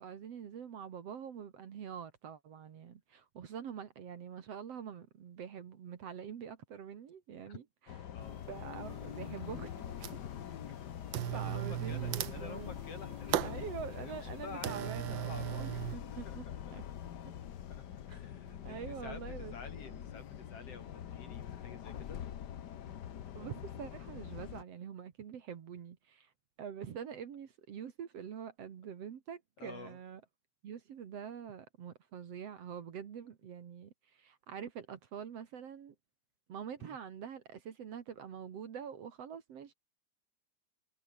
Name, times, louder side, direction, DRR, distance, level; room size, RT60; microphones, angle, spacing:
voice 1, 0.0-7.6 8.5-9.9 11.3-12.8 13.4-16.5 16.7-16.8 18.1-18.2 18.6-20.0 23.4-26.3 26.6-30.2 30.6-35.9 36.5-39.7, right 8 dB, 60° right, 2.6 m, -45 dB
sound 1, 7.9-24.6, left 10 dB, 80° left, 0.9 m, -44 dB
voice 2, 8.1-8.4 10.7-10.8 11.3-13.5 13.9-15.8 16.2-16.6 17.7-22.2 29.6-30.0 36.8-37.0, left 4 dB, 50° left, 4.7 m, -50 dB
sound 2, 8.2-8.3 8.9-9.4 9.7-10.4 11.1-16.0, right 11 dB, 85° right, 1.0 m, -37 dB
omnidirectional pair, 3.4 m